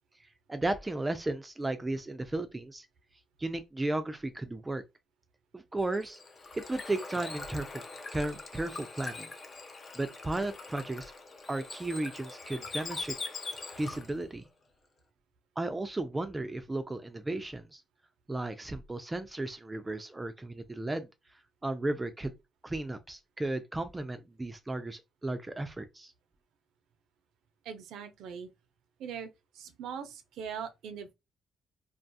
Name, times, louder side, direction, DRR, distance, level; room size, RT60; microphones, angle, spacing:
voice 1, 0.5-2.9 3.4-4.8 5.5-6.2 6.5-7.8 8.1-9.3 9.9-11.1 11.5-13.2 13.8-14.4 15.6-17.8 18.3-21.1 21.6-22.3 22.6-26.1, right 2 dB, 15° right, 0.3 m, -34 dB
Bird / Water, 5.8-14.2, left 3 dB, 45° left, 0.5 m, -42 dB
voice 2, 27.6-28.5 29.0-31.1, right 7 dB, 80° right, 0.4 m, -41 dB
2.3 x 2.2 x 2.6 m
cardioid pair, 90°, 0 cm